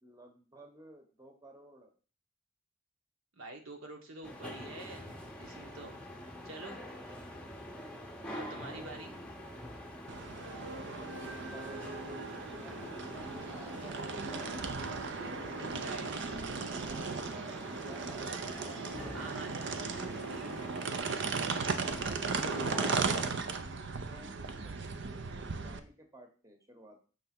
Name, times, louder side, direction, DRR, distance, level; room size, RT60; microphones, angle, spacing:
voice 1, 0.0-1.9 6.0-6.6 8.5-9.3 10.4-14.2 17.7-18.8 23.4-24.8 25.1-27.0, equal, 15° right, 4 dB, 1.0 m, -54 dB
voice 2, 3.3-6.0 6.4-6.8 8.3-9.1 15.7-16.1 19.1-20.5, right 2 dB, 75° right, 3 dB, 1.4 m, -47 dB
sound 1, 4.2-23.2, left 1 dB, 5° left, 0.8 m, -45 dB
sound 2, 10.1-25.8, right 4 dB, 55° right, 0.6 m, -37 dB
6.5 x 3.4 x 5.9 m, 0.37 s
head